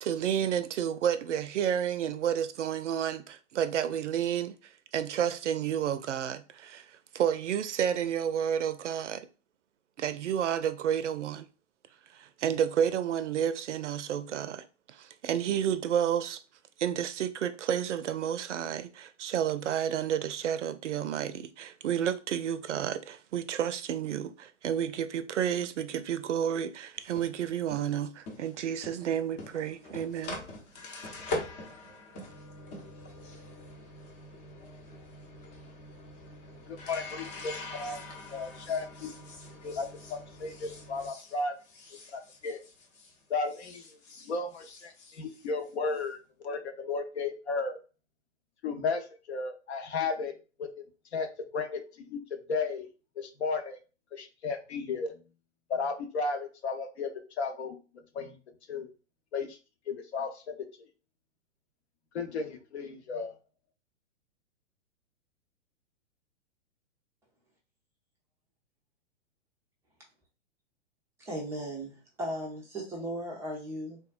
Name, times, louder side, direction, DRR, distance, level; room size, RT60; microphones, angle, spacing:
voice 1, 0.0-4.6 4.9-9.3 10.0-11.5 12.1-16.4 16.8-30.4, right 9 dB, 70° right, 0.5 m, -31 dB
sound 1, 27.0-43.2 43.4-46.0, left 2 dB, 30° left, 0.7 m, -44 dB
voice 2, 36.7-38.0 38.3-39.1 39.6-41.5 42.1-42.6 43.3-43.8 44.2-46.2 46.4-47.8 48.6-50.3 50.6-50.7 51.1-51.3 51.5-52.2 52.5-52.9 53.2-53.8 54.1-55.2 55.7-57.8 58.1-58.3 58.7-58.9 59.3-59.6 59.9-60.9 62.1-63.3, left 4 dB, 60° left, 0.7 m, -34 dB
voice 3, 71.2-74.0, equal, 5° right, 0.4 m, -37 dB
3.4 x 2.1 x 2.3 m
figure-of-eight pair, 115°, 37 cm